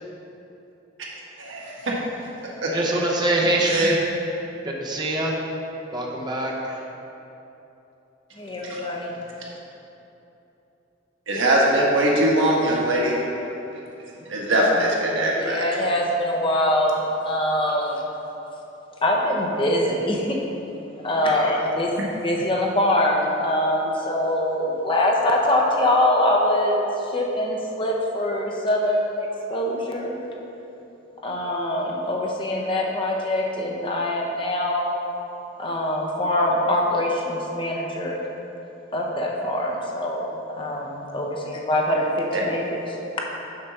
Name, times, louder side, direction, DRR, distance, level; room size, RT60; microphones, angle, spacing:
voice 1, 1.4-1.9 2.6-2.7 3.6-3.9 8.6-8.8 11.3-13.1 14.3-15.6 42.3-42.4, right 1 dB, 85° right, -3 dB, 1.3 m, -21 dB
voice 2, 2.7-4.0 4.6-5.4 5.9-6.7, right 1 dB, 25° right, -2 dB, 0.8 m, -23 dB
voice 3, 8.4-9.1 15.4-18.0 19.0-20.4 21.0-21.9 22.2-30.2 31.2-34.9 35.6-38.2 38.9-40.3 40.6-42.8, left 1 dB, 25° left, -2 dB, 0.8 m, -23 dB
6.7 x 4.1 x 5.9 m, 3.0 s
head